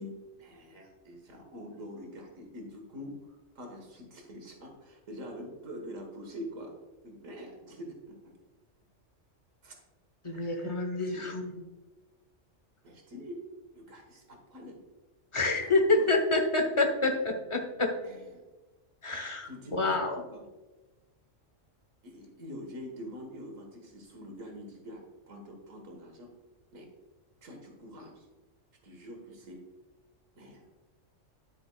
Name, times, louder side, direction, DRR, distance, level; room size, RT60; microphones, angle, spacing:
voice 1, 0.0-6.7 7.0-8.3 9.6-9.8 10.3-11.3 12.8-13.4 13.7-14.8 15.6-16.2 18.0-18.4 19.4-20.5 22.0-26.3 26.7-26.9 27.4-28.3 28.8-29.6 30.4-30.6, equal, 85° right, 2 dB, 1.8 m, -45 dB
voice 2, 10.2-11.6 15.3-17.9 19.0-20.1, left 2 dB, 25° left, 3 dB, 0.9 m, -28 dB
9.6 x 7.8 x 2.3 m, 1.2 s
omnidirectional pair, 1.3 m